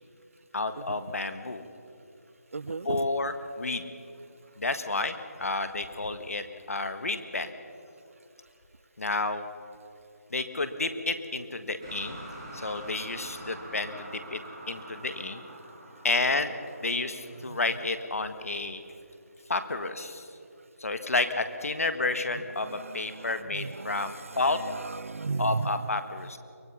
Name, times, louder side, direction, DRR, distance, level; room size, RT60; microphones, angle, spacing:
voice 1, 0.5-1.6 2.8-3.8 4.6-7.5 9.0-9.5 10.3-12.2 12.5-14.4 14.7-15.4 16.0-16.5 16.8-18.8 19.5-20.3 20.8-24.6 25.4-26.4, left 3 dB, 65° left, 9 dB, 1.7 m, -30 dB
voice 2, 2.5-3.0 17.5-17.6 22.6-25.8, right 4 dB, 55° right, 20 dB, 0.5 m, -35 dB
sound 1, 11.8-17.9, right 1 dB, 15° right, 3.5 m, -45 dB
23.5 x 19.0 x 5.7 m, 2.6 s
figure-of-eight pair, 170°, 9 cm